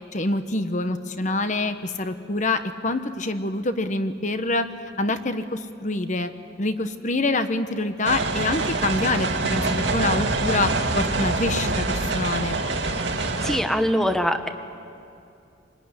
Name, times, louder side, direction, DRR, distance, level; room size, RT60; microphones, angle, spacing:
voice 1, 0.1-4.6 5.0-6.3 6.6-12.6, left 2 dB, 40° left, 9 dB, 1.3 m, -26 dB
sound 1, 8.0-13.6, right 3 dB, 65° right, 2.1 m, -25 dB
voice 2, 13.4-14.5, equal, ahead, 7 dB, 1.3 m, -22 dB
27.0 x 21.0 x 9.8 m, 2.6 s
head